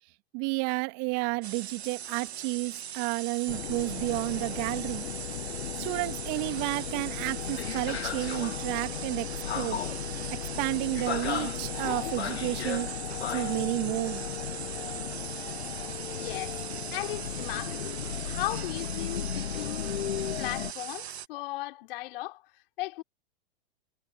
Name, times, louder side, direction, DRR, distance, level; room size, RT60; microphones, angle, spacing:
voice 1, 0.3-5.1 5.8-9.3 9.5-9.8 10.6-12.9 13.3-14.2, right 31 dB, 50° right, 2.8 m, -31 dB
sound 1, 1.4-21.3, right 9 dB, 85° right, 1.2 m, -40 dB
sound 2, 3.5-20.7, left 10 dB, 90° left, 0.9 m, -35 dB
voice 2, 16.1-16.6 16.9-19.9 20.4-23.0, left 18 dB, 60° left, 4.3 m, -37 dB
hypercardioid pair, 115°, 31 cm